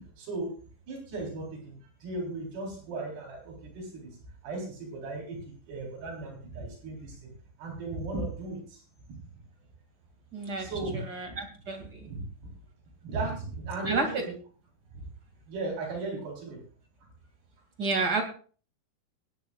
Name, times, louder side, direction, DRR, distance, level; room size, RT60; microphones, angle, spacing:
voice 1, 0.2-0.5 0.9-4.2 4.4-7.3 7.6-8.8 9.1-9.2 10.6-11.0 11.3-11.4 12.0-12.3 13.0-14.3 14.9-15.1 15.5-16.6, right 3 dB, 80° right, -1 dB, 6.1 m, -36 dB
voice 2, 10.3-12.1 13.9-14.2 17.8-18.2, right 4 dB, 30° right, 3 dB, 2.2 m, -30 dB
24.0 x 10.5 x 2.4 m, 0.40 s
omnidirectional pair, 4.6 m